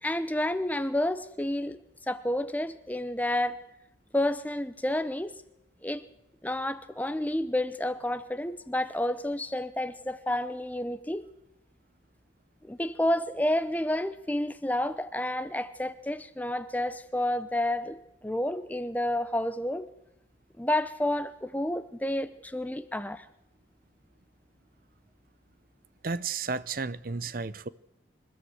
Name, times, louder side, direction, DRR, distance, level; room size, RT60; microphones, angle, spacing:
voice 1, 0.0-1.8 2.1-3.6 4.1-5.3 5.8-6.0 6.4-11.2 12.6-19.9 20.6-23.2, left 1 dB, 10° left, 0.8 m, -30 dB
voice 2, 26.0-27.7, right 4 dB, 50° right, 0.7 m, -33 dB
27.0 x 13.5 x 7.9 m
head